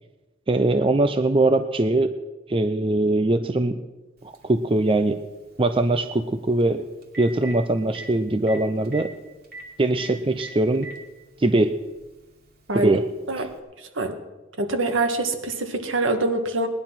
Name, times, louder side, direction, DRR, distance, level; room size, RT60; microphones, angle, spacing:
voice 1, 0.5-2.1 2.5-3.8 4.2-5.2 5.6-6.8 7.2-9.1 9.8-10.9 11.4-11.8 12.7-13.0 13.4-13.5, right 2 dB, 25° right, 9 dB, 0.6 m, -21 dB
Telephone, 4.3-4.4 6.6-6.7 7.0-7.5 7.9-8.1 8.5-8.6 8.8-9.0 9.5-9.6 10.0-10.1 10.4-11.0 12.0-12.1 13.5-13.6, right 2 dB, 50° right, 2.4 m, -38 dB
voice 2, 14.6-16.7, right 2 dB, 70° right, 6 dB, 1.7 m, -24 dB
19.0 x 11.0 x 5.9 m, 1.1 s
head